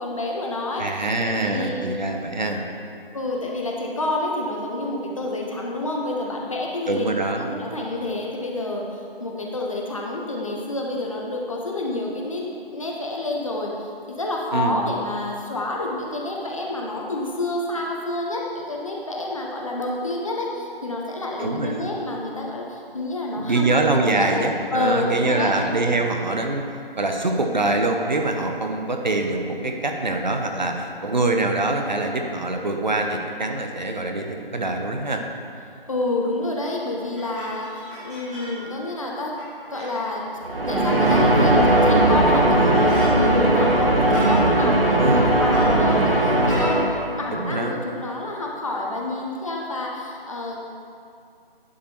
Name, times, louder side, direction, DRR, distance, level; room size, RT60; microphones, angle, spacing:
voice 1, 0.0-1.9 3.1-7.0 7.4-12.4 12.7-24.4 24.7-25.5 35.9-39.3 39.7-40.2 40.7-50.7, left 2 dB, 35° left, -2 dB, 0.9 m, -28 dB
voice 2, 0.8-2.6 6.9-7.5 14.5-14.8 21.4-21.9 23.4-26.6 27.0-35.2 45.0-45.3 47.3-47.8, right 2 dB, 50° right, 3 dB, 0.8 m, -24 dB
sound 1, 37.0-38.6 38.9-39.0 39.3-40.0 40.6-41.4 41.8-41.9 42.2-44.4 45.2-46.2 46.5-46.7, equal, 5° right, 1.0 m, -38 dB
sound 2, 40.4-47.3, right 1 dB, 70° right, 1.3 m, -18 dB
11.0 x 5.1 x 4.4 m, 2.4 s
figure-of-eight pair, 155°, 30 cm